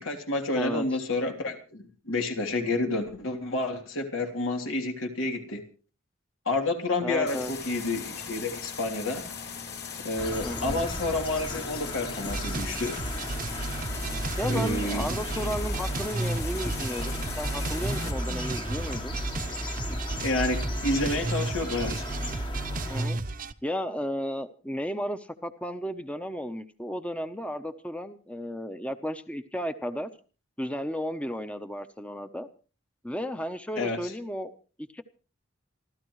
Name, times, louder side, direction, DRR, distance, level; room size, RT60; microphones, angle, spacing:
voice 1, 0.0-5.6 6.4-9.3 10.0-13.0 14.5-15.2 20.2-22.1 33.8-34.1, left 2 dB, 85° left, 3 dB, 3.2 m, -29 dB
voice 2, 0.5-0.8 7.0-7.5 10.4-10.8 14.4-19.2 22.9-23.2 23.6-30.1 30.6-32.5 33.0-34.5 34.9-35.0, equal, 5° left, 9 dB, 0.8 m, -34 dB
sound 1, 7.3-18.1, left 6 dB, 50° left, 2.9 m, -39 dB
sound 2, 10.2-23.1, left 1 dB, 25° left, 1.1 m, -36 dB
sound 3, 12.3-23.5, right 2 dB, 40° right, 0.8 m, -33 dB
28.0 x 13.0 x 3.2 m, 0.37 s
head